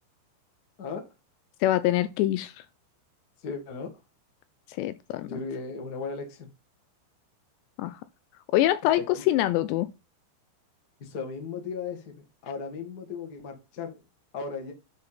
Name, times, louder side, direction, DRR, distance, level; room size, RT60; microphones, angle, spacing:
voice 1, 1.6-2.6 4.7-5.4 7.8-8.0 8.5-9.9, left 14 dB, 80° left, 2.6 m, -25 dB
voice 2, 3.4-3.9 5.3-6.5 9.0-9.1 11.0-14.0 14.3-14.7, left 5 dB, 50° left, 1.1 m, -36 dB
8.1 x 5.1 x 5.6 m
omnidirectional pair, 5.3 m